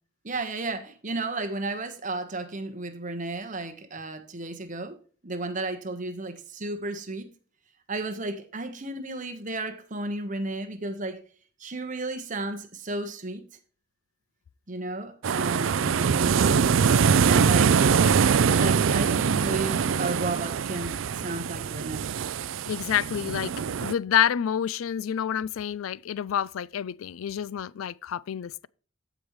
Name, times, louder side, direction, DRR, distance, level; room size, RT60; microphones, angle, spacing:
voice 1, 0.2-5.0 5.2-7.3 7.9-11.2 11.6-13.5 14.7-16.7 17.2-17.8 18.6-22.1, right 2 dB, 40° right, 1.3 m, -33 dB
sound 1, 15.2-23.9, right 6 dB, 70° right, 0.4 m, -23 dB
voice 2, 22.7-23.5 23.8-28.7, left 9 dB, 90° left, 0.4 m, -28 dB
15.0 x 5.2 x 3.1 m
head